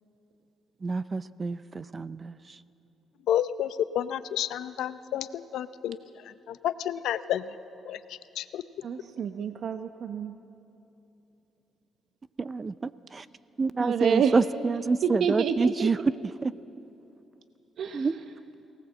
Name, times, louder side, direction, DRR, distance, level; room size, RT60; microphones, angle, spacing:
voice 1, 0.8-2.6 12.4-13.3 13.6-16.0 16.4-16.5 17.9-18.1, right 4 dB, 30° right, 16 dB, 0.5 m, -27 dB
voice 2, 3.3-6.0 6.5-7.4 7.9-8.0 8.4-8.6, left 11 dB, 80° left, 13 dB, 0.6 m, -30 dB
voice 3, 8.8-10.4 13.8-14.3 15.0-15.9 17.8-18.1, right 7 dB, 65° right, 8 dB, 0.8 m, -28 dB
23.5 x 18.5 x 7.5 m, 2.8 s
cardioid pair, 90°, 0 cm